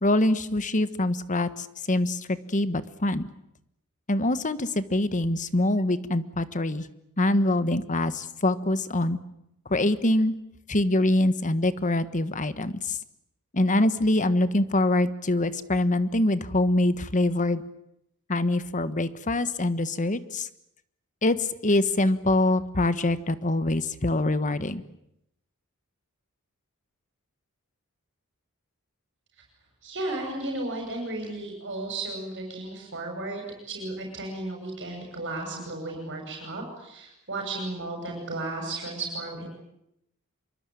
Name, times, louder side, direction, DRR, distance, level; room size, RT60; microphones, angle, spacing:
voice 1, 0.0-2.2 2.5-3.3 4.1-6.8 7.2-9.2 9.7-10.4 10.7-13.0 13.5-17.6 18.3-20.5 21.2-21.4 21.6-24.8, left 1 dB, 35° left, 13 dB, 1.4 m, -24 dB
voice 2, 29.8-39.5, right 2 dB, 55° right, 1 dB, 7.0 m, -34 dB
26.0 x 23.5 x 9.4 m, 0.79 s
head